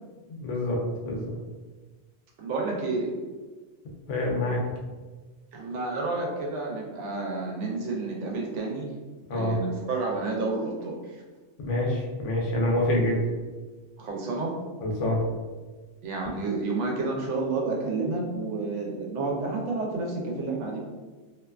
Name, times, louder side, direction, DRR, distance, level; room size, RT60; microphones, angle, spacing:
voice 1, 0.4-1.3 4.1-4.6 9.3-9.6 11.6-13.2 14.8-15.2, left 1 dB, 90° left, -2 dB, 1.0 m, -26 dB
voice 2, 2.4-3.1 5.5-8.9 9.3-11.2 14.0-14.5 16.0-20.8, right 3 dB, 80° right, -1 dB, 1.0 m, -30 dB
2.7 x 2.2 x 2.3 m, 1.3 s
omnidirectional pair, 1.2 m